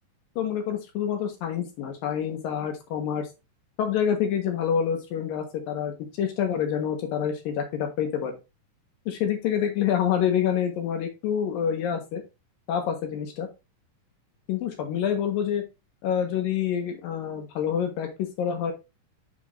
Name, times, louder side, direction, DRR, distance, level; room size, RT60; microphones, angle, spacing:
voice 1, 0.4-3.3 3.8-8.4 9.1-12.2 12.7-13.5 14.5-15.6 16.0-18.7, left 8 dB, 90° left, 4 dB, 3.2 m, -27 dB
7.0 x 6.1 x 2.6 m, 0.25 s
omnidirectional pair, 3.9 m